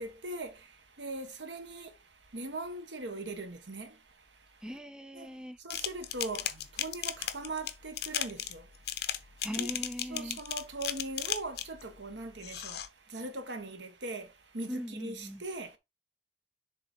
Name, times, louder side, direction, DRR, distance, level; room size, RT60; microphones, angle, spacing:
voice 1, 0.0-4.6 5.1-5.3 5.6-9.7 10.1-15.8, right 2 dB, 90° right, 1.4 m, -41 dB
voice 2, 4.6-5.6 9.4-10.4 14.7-15.4, equal, 5° right, 0.6 m, -40 dB
sound 1, 5.7-11.8 12.4-12.9, left 11 dB, 60° left, 0.7 m, -35 dB
6.9 x 4.2 x 4.3 m
head